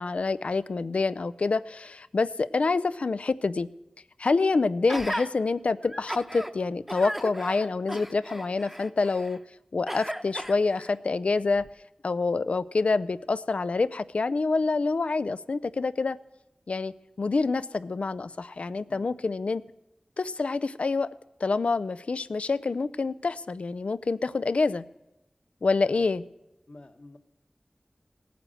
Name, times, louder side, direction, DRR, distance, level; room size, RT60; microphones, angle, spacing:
voice 1, 0.0-3.7 4.2-9.4 9.7-11.7 12.0-16.2 16.7-19.6 20.2-21.1 21.4-24.8 25.6-26.2, left 3 dB, 85° left, 15 dB, 0.4 m, -27 dB
Gasp, 4.9-5.3 5.8-6.5 6.9-9.4 9.9-10.9 11.6-11.7, equal, 10° right, 0.9 m, -36 dB
voice 2, 26.7-27.2, left 2 dB, 65° left, 7 dB, 1.2 m, -49 dB
17.5 x 9.3 x 7.7 m, 0.95 s
wide cardioid pair, 55°, 2 cm